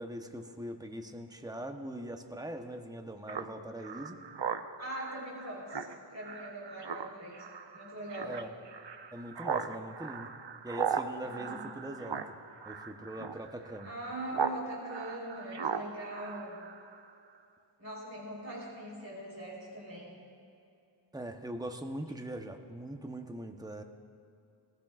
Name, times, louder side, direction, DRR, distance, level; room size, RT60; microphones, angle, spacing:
voice 1, 0.0-4.2 8.2-8.5 9.1-10.3 10.6-12.2 12.6-13.9 21.1-23.8, right 1 dB, 10° right, 5 dB, 1.0 m, -41 dB
Speech synthesizer, 3.3-14.6 14.9-17.1, right 6 dB, 60° right, 0.7 m, -38 dB
voice 2, 4.8-5.8 6.1-7.4 7.7-8.4 11.2-11.6 13.8-16.6 17.8-20.2, right 1 dB, 30° right, -4 dB, 3.8 m, -42 dB
21.5 x 15.5 x 2.5 m, 2.7 s
wide cardioid pair, 45°, 47 cm